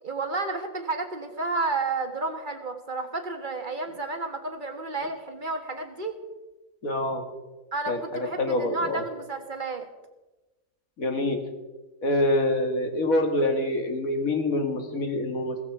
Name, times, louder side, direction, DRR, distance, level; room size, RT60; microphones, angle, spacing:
voice 1, 0.0-6.2 7.7-9.9, right 3 dB, 35° right, 5 dB, 1.8 m, -31 dB
voice 2, 6.8-7.2 7.9-9.0 11.0-11.4 12.0-15.6, left 1 dB, 75° left, 5 dB, 2.6 m, -26 dB
17.0 x 15.0 x 4.9 m, 1.1 s
omnidirectional pair, 1.5 m